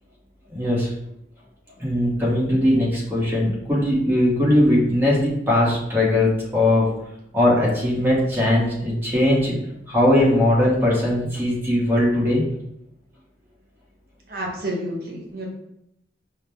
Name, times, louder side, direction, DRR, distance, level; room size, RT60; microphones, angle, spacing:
voice 1, 0.5-0.9 1.8-6.9 7.3-9.6 9.9-12.4, left 1 dB, 10° right, -6 dB, 1.1 m, -20 dB
voice 2, 14.3-15.5, right 1 dB, 55° right, -2 dB, 0.9 m, -30 dB
4.8 x 2.2 x 3.3 m, 0.79 s
head